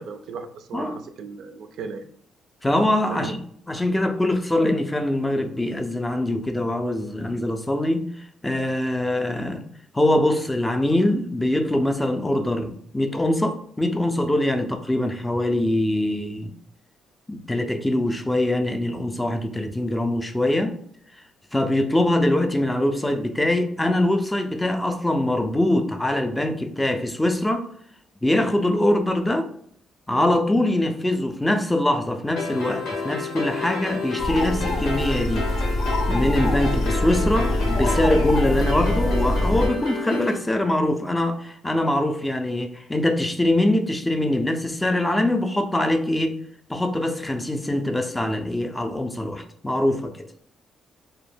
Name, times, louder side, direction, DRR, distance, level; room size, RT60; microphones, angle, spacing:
voice 1, 0.0-2.0 3.1-3.4, right 5 dB, 75° right, 0.3 m, -36 dB
voice 2, 0.7-1.1 2.6-3.4 3.7-9.7 9.9-16.5 17.3-20.8 21.2-21.3 21.5-27.7 28.2-29.5 30.1-35.5 36.1-46.4 46.7-50.3, left 1 dB, 10° left, 0.3 m, -23 dB
sound 1, 32.4-40.4, left 3 dB, 90° left, 0.8 m, -31 dB
sound 2, 34.2-39.7, left 1 dB, 70° left, 0.5 m, -24 dB
2.1 x 2.1 x 3.2 m
cardioid pair, 90°, 0 cm